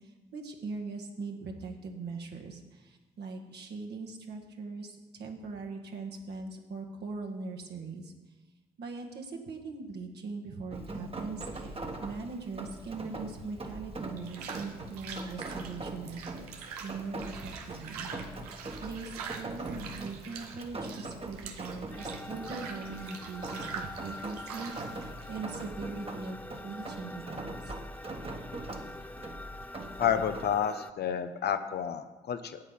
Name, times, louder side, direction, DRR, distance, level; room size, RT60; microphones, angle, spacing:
voice 1, 0.0-8.1 8.8-16.5 16.8-27.7, right 4 dB, 60° right, 1 dB, 1.7 m, -41 dB
Rain, 10.7-30.5, right 2 dB, 30° right, 1.5 m, -42 dB
sound 1, 11.5-26.3, right 6 dB, 90° right, 0.7 m, -45 dB
sound 2, 21.9-30.9, left 1 dB, 10° left, 0.4 m, -46 dB
voice 2, 30.0-32.6, left 8 dB, 60° left, 9 dB, 0.8 m, -30 dB
8.8 x 8.3 x 5.8 m, 1.1 s
hypercardioid pair, 45°, 19 cm